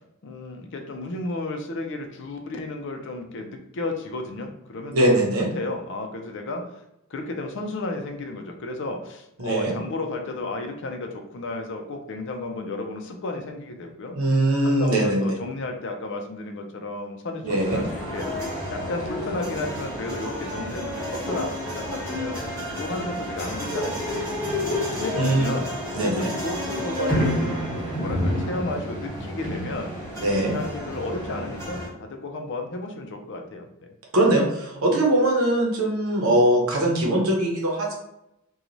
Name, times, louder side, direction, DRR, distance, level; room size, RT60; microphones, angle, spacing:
voice 1, 0.2-6.8 7.1-14.2 14.6-18.3 18.7-22.4 22.8-27.4 27.8-29.9 30.3-33.7, left 2 dB, 60° left, 4 dB, 0.5 m, -33 dB
voice 2, 4.9-5.5 9.4-9.7 14.1-15.3 17.4-17.8 25.2-25.5 25.9-26.3 30.2-30.5 34.1-37.9, right 1 dB, 85° right, -1 dB, 0.8 m, -21 dB
sound 1, 17.5-31.9, equal, 15° left, 1.0 m, -30 dB
3.0 x 2.3 x 2.5 m, 0.82 s
head